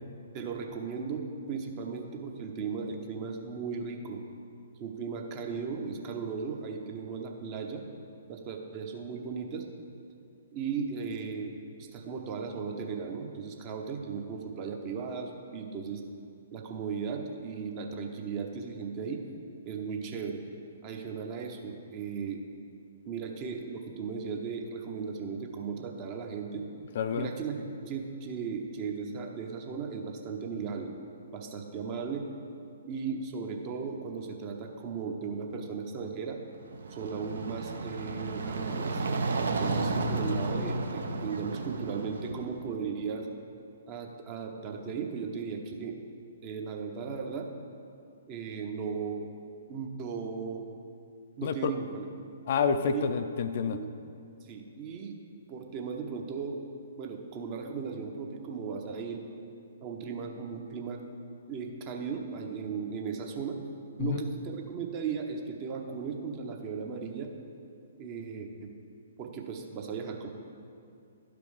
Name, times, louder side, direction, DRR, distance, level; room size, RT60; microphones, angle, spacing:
voice 1, 0.3-4.2 4.8-7.8 8.3-9.7 10.5-11.5 11.8-16.0 16.5-19.2 19.7-20.4 20.8-22.4 23.0-26.6 27.2-30.9 31.3-32.3 32.9-36.4 36.9-39.0 39.4-43.3 43.9-46.0 46.4-47.5 48.3-49.3 49.7-50.6 51.4-52.1 52.9-53.1 53.6-53.9 54.5-55.2 55.5-56.6 57.0-59.2 59.8-61.0 61.5-63.6 64.0-67.3 68.0-68.7 69.2-70.3, right 5 dB, 30° right, 3 dB, 0.9 m, -36 dB
voice 2, 27.0-27.3 51.4-51.7 52.5-53.8 64.0-64.2, left 6 dB, 45° left, 9 dB, 0.4 m, -28 dB
sound 1, 36.6-42.6, right 3 dB, 60° right, 0.6 m, -32 dB
11.5 x 5.2 x 4.9 m, 2.5 s
figure-of-eight pair, 120°, 0 cm